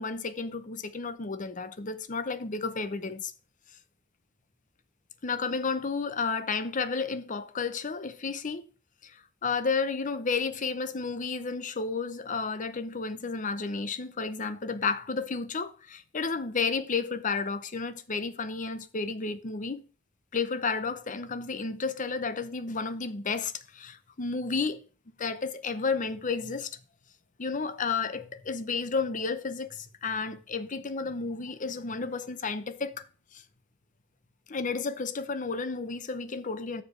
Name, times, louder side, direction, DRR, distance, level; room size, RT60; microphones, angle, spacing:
voice 1, 0.0-3.3 5.2-8.7 9.0-9.1 9.4-19.8 20.3-24.8 25.2-26.7 27.4-33.1 33.3-33.4 34.5-36.8, left 4 dB, 40° left, 0.7 m, -32 dB
6.8 x 5.0 x 6.7 m
head